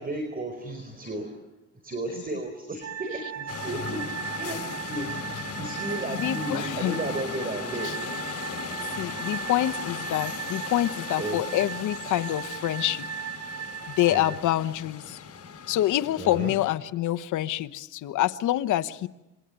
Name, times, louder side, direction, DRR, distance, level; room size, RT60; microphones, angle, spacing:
voice 1, 0.0-1.4 1.8-4.1 4.4-8.0 8.8-9.2 11.2-11.4 14.1-14.3 16.2-16.5, right 2 dB, 30° right, 4.6 m, -34 dB
sound 1, 2.8-14.4, right 8 dB, 55° right, 4.6 m, -37 dB
sound 2, 3.5-16.8, left 6 dB, 50° left, 5.3 m, -37 dB
voice 2, 6.1-7.0 7.8-7.9 8.9-13.1 14.0-15.2 15.7-19.1, left 13 dB, 80° left, 1.1 m, -26 dB
27.5 x 22.5 x 9.1 m
cardioid pair, 90°, 30 cm